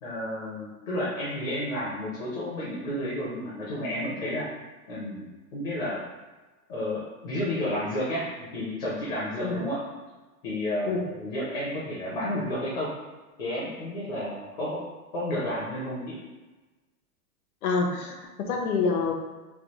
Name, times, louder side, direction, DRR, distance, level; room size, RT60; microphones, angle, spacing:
voice 1, 0.0-4.5 4.9-5.2 5.5-6.0 6.7-9.8 10.4-12.9 13.4-14.8 15.1-16.2, left 1 dB, 30° left, -7 dB, 0.5 m, -31 dB
voice 2, 17.6-19.1, left 4 dB, 65° left, 2 dB, 0.7 m, -27 dB
3.3 x 2.3 x 2.9 m, 1.2 s
supercardioid pair, 170°, 46 cm